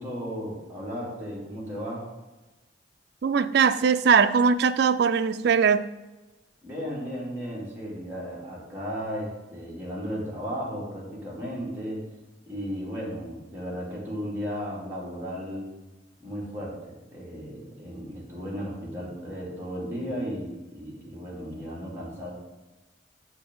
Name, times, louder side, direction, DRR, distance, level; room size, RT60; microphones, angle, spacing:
voice 1, 0.0-2.1 6.6-12.1 12.5-15.7 16.2-22.3, equal, 10° right, -7 dB, 2.9 m, -35 dB
voice 2, 3.2-5.9, right 6 dB, 65° right, 10 dB, 0.4 m, -21 dB
8.8 x 6.8 x 3.9 m, 1.1 s
head